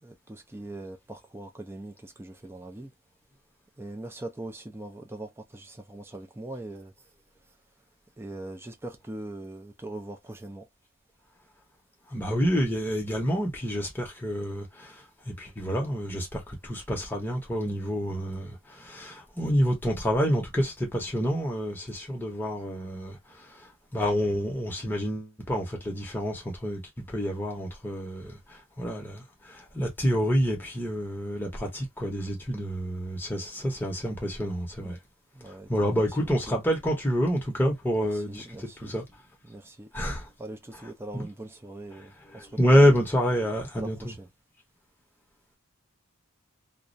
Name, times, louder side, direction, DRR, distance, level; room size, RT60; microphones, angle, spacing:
voice 1, 0.0-2.9 3.8-6.9 8.2-10.6 34.8-35.0 35.3-35.7 35.9-36.6 37.9-38.9 39.4-39.9 40.4-43.0 43.7-44.3, right 2 dB, 10° right, 0.4 m, -41 dB
voice 2, 12.1-35.0 35.4-39.0 39.9-40.3 40.7-40.9 41.1-41.3 41.9-44.2, equal, 10° left, 0.8 m, -28 dB
2.4 x 2.0 x 2.5 m
head